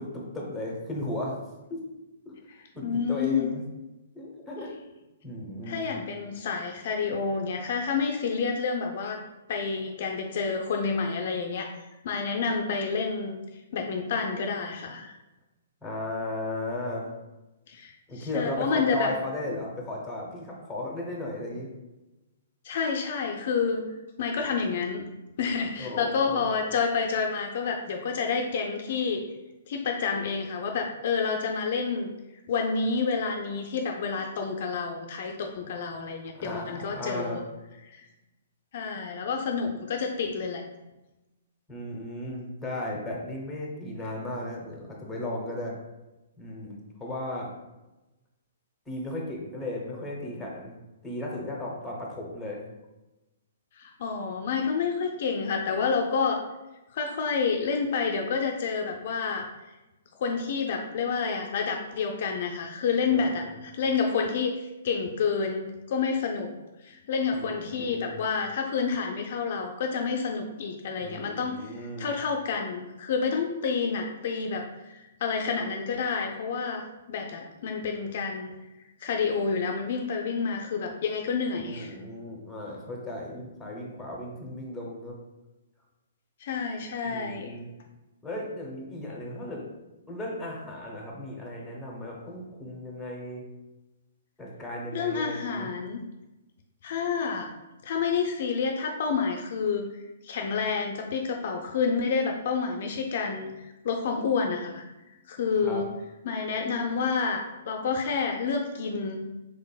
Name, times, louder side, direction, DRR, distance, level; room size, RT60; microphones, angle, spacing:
voice 1, 0.0-1.4 1.7-1.8 2.3-2.4 2.7-3.6 4.1-4.7 5.2-5.9 15.8-17.1 18.1-21.7 25.8-26.5 36.3-37.4 41.7-45.8 46.4-47.5 48.9-50.8 51.0-52.6 63.1-63.6 67.3-68.2 71.0-72.1 81.6-85.2 87.0-87.7 88.2-89.7 90.1-93.4 94.4-95.7 105.6-105.8, left 1 dB, 5° left, -2 dB, 0.9 m, -35 dB
voice 2, 2.8-3.5 5.6-9.2 9.5-11.7 12.0-13.4 13.7-15.1 17.7-19.1 22.6-23.9 24.2-25.1 25.4-29.2 29.7-32.1 32.5-37.4 37.8-38.0 38.7-40.6 53.8-56.4 56.9-59.5 60.2-66.5 66.8-78.5 79.0-82.0 86.4-87.6 94.9-96.1 96.8-97.5 97.8-104.8 105.3-105.9 106.2-109.3, left 5 dB, 55° left, 3 dB, 0.4 m, -29 dB
3.7 x 3.4 x 2.3 m, 1.0 s
hypercardioid pair, 135°, 0 cm